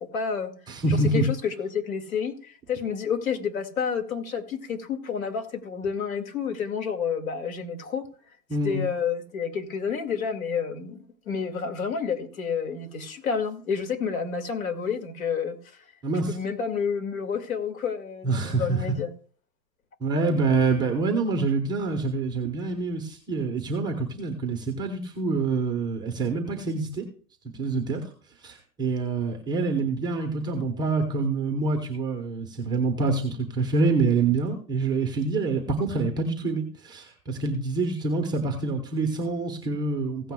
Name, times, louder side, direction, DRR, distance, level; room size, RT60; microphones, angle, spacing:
voice 1, 0.1-0.5 0.9-8.1 8.6-15.6 16.3-19.1, left 6 dB, 55° left, 2.1 m, -29 dB
voice 2, 0.7-1.2 8.5-8.8 16.0-16.4 18.2-19.0 20.0-27.1 27.5-28.0 28.4-40.3, right 3 dB, 10° right, 0.8 m, -26 dB
16.0 x 9.1 x 2.3 m
hypercardioid pair, 140°, 50 cm